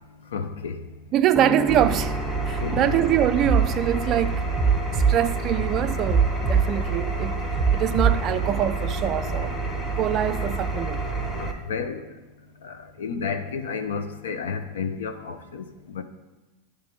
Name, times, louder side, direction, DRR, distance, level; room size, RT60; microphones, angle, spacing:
voice 1, 0.3-0.8 2.6-3.0 11.4-12.0 12.6-16.0, left 5 dB, 85° left, 0.6 m, -31 dB
voice 2, 1.1-2.2 2.5-4.4 4.9-7.4 7.7-9.6 10.0-11.0, right 11 dB, 40° right, 0.3 m, -24 dB
sound 1, 1.4-3.7, left 2 dB, 5° right, 0.6 m, -34 dB
Engine, 1.7-11.5, right 3 dB, 15° left, 1.1 m, -28 dB
sound 2, 3.4-3.7 4.6-5.2 6.1-6.7 7.6-8.2, right 6 dB, 25° right, 1.0 m, -20 dB
9.8 x 3.5 x 5.2 m
hypercardioid pair, 105°, 0 cm